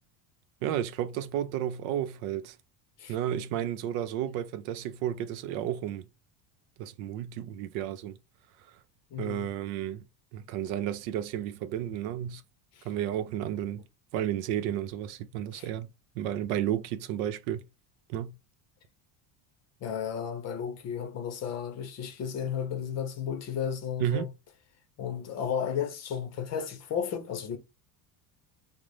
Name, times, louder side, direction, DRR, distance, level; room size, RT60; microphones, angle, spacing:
voice 1, 0.6-2.5 3.1-6.1 6.8-8.2 9.2-10.0 10.3-12.4 12.8-13.8 14.1-15.9 16.1-17.6 18.1-18.3 24.0-24.3, right 11 dB, 85° right, 0.7 m, -32 dB
voice 2, 9.1-9.5 12.8-12.9 15.5-15.7 19.8-24.3 25.0-27.6, left 8 dB, 35° left, 0.6 m, -33 dB
3.9 x 2.0 x 3.2 m
cardioid pair, 155°, 45 cm